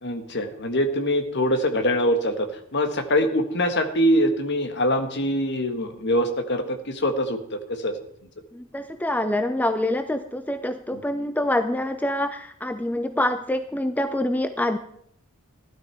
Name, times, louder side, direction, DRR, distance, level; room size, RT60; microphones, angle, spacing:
voice 1, 0.0-8.0 10.9-11.0, equal, 50° left, 7 dB, 1.6 m, -24 dB
voice 2, 8.5-14.8, left 1 dB, 5° left, 8 dB, 0.5 m, -26 dB
16.0 x 12.0 x 4.6 m, 0.71 s
head